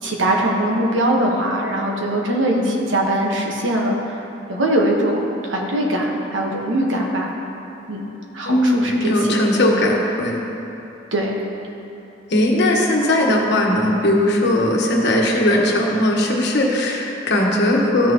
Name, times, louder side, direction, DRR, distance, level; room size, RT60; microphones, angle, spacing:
voice 1, 0.0-4.2 4.5-7.3 7.9-8.1 8.3-9.4 11.1-11.4, right 1 dB, 75° right, -1 dB, 1.3 m, -21 dB
voice 2, 8.5-10.4 12.3-18.1, left 1 dB, 60° left, -1 dB, 1.3 m, -18 dB
14.0 x 6.7 x 3.0 m, 3.0 s
head